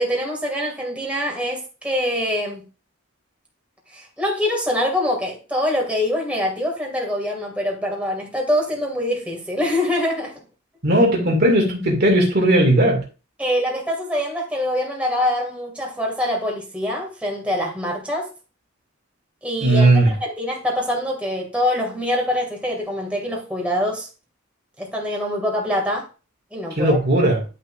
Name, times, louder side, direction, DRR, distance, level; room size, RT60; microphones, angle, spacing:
voice 1, 0.0-2.6 3.9-10.3 13.4-18.3 19.4-24.1 24.8-26.1 26.5-27.0, left 1 dB, 5° right, 2.3 m, -24 dB
voice 2, 10.8-13.0 19.6-20.1 26.7-27.4, right 1 dB, 50° right, 2.2 m, -17 dB
10.5 x 5.8 x 2.5 m
head